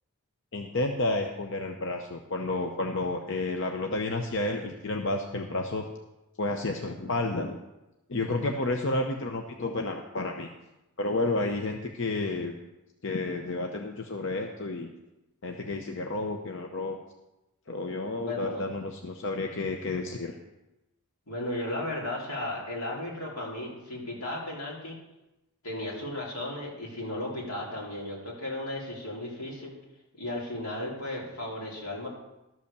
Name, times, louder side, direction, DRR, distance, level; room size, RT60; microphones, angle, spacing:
voice 1, 0.5-5.9 6.4-7.6 8.1-10.5 11.0-12.6 13.0-14.9 15.4-17.0 17.7-20.4, left 2 dB, 55° left, 3 dB, 0.7 m, -31 dB
voice 2, 18.2-18.6 21.3-25.0 25.6-29.8 30.1-32.1, left 1 dB, 90° left, -4 dB, 3.4 m, -35 dB
12.5 x 5.4 x 6.8 m, 0.97 s
head